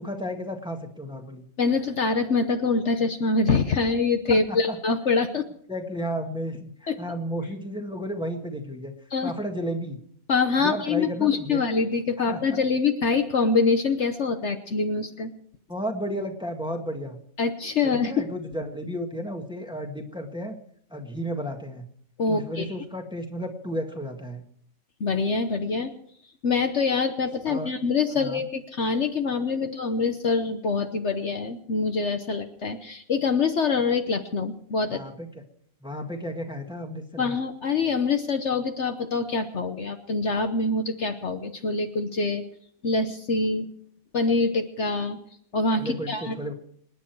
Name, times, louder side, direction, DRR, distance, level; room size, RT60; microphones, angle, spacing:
voice 1, 0.0-1.5 4.5-4.8 5.7-8.9 9.2-10.0 10.6-11.6 12.3-12.6 15.7-17.2 17.8-20.6 20.9-21.9 22.3-24.4 27.5-27.7 28.2-28.4 34.9-35.3 35.8-37.4 45.8-46.5, equal, 5° right, 3 dB, 1.8 m, -33 dB
voice 2, 1.6-5.4 6.9-7.0 9.1-9.3 10.3-15.3 17.4-18.1 22.2-22.7 25.0-25.9 26.4-35.0 37.2-42.4 42.8-43.7 44.1-45.2 45.5-46.4, left 4 dB, 55° left, 7 dB, 1.2 m, -25 dB
26.5 x 10.0 x 4.7 m, 0.63 s
omnidirectional pair, 1.5 m